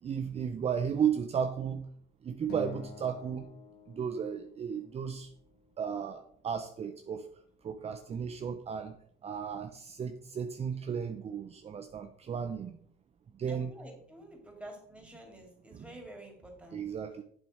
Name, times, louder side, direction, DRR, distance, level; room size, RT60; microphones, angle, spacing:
voice 1, 0.0-1.9 2.2-3.5 3.9-5.3 5.8-7.3 7.6-9.0 9.2-12.8 13.3-13.7 15.7-15.8 16.7-17.2, right 7 dB, 35° right, 7 dB, 0.8 m, -34 dB
Acoustic guitar, 2.5-4.9, left 6 dB, 70° left, 2.0 m, -48 dB
voice 2, 13.5-16.8, right 1 dB, 5° right, 1 dB, 3.5 m, -49 dB
8.9 x 7.3 x 4.7 m, 0.65 s
cardioid pair, 110°, 17 cm